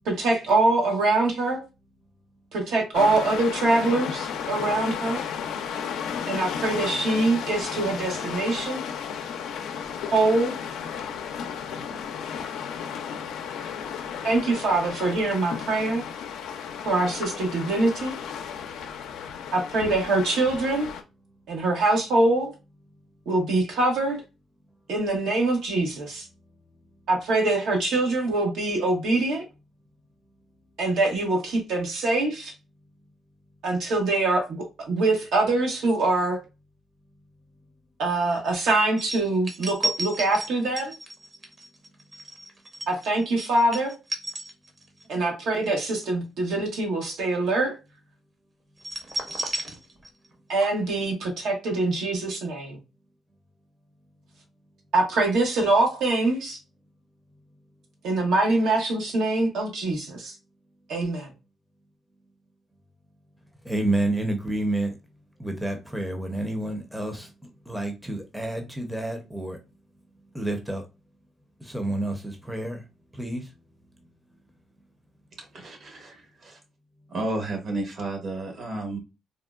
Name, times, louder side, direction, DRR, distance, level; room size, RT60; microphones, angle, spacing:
voice 1, 0.0-1.6 2.5-5.2 6.3-8.8 10.1-10.6 14.2-16.0 16.8-18.2 19.5-20.9 21.5-22.5 23.3-24.2 24.9-26.2 27.1-29.4 30.8-32.5 33.6-36.4 38.0-40.9 42.9-43.9 45.1-47.7 50.5-52.8 54.9-56.6 58.0-60.3 60.9-61.3, right 2 dB, 80° right, 1.0 m, -24 dB
sound 1, 2.9-21.0, left 7 dB, 85° left, 0.4 m, -34 dB
sound 2, 39.0-45.1 45.4-45.6 48.8-50.3 50.6-50.7, right 2 dB, 40° right, 0.9 m, -33 dB
voice 2, 63.6-64.9 65.4-67.3 67.7-69.6 70.3-70.8 71.6-72.8 73.1-73.5, right 1 dB, 5° right, 0.6 m, -29 dB
voice 3, 75.4-76.6 77.1-79.0, right 2 dB, 55° right, 1.2 m, -32 dB
3.6 x 2.1 x 2.3 m
cardioid pair, 90°, 0 cm